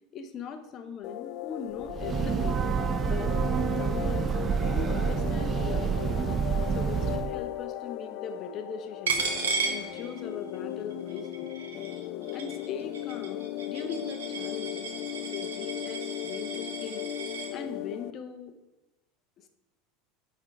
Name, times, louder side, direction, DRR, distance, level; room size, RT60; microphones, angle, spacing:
voice 1, 0.1-2.6 3.0-3.3 3.8-4.3 4.7-6.3 6.7-9.3 9.7-11.5 12.3-14.9 15.3-17.1 17.5-18.6 19.4-19.5, left 5 dB, 45° left, 7 dB, 0.9 m, -40 dB
sound 1, 1.0-18.1, left 13 dB, 60° left, 0.4 m, -37 dB
Breathing / Train, 1.8-7.4, right 7 dB, 35° right, 0.3 m, -28 dB
Coin (dropping), 9.1-10.5 10.9-17.5, right 5 dB, 85° right, 1.0 m, -35 dB
8.1 x 3.8 x 4.7 m, 1.1 s
hypercardioid pair, 90°, 0 cm